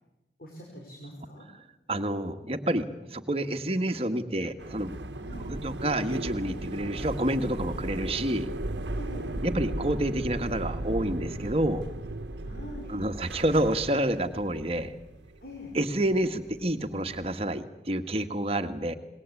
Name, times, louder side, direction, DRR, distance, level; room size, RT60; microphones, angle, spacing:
voice 1, 0.4-1.5 5.1-5.5 8.9-9.4 12.4-12.9 15.4-15.7, left 1 dB, 55° left, 0 dB, 5.4 m, -43 dB
voice 2, 1.9-4.9 5.5-8.5 9.4-11.8 12.9-14.9 15.7-18.9, right 1 dB, 35° right, 6 dB, 1.6 m, -28 dB
sound 1, 4.6-17.4, right 1 dB, 90° right, 1.2 m, -37 dB
27.0 x 21.0 x 8.5 m, 0.97 s
head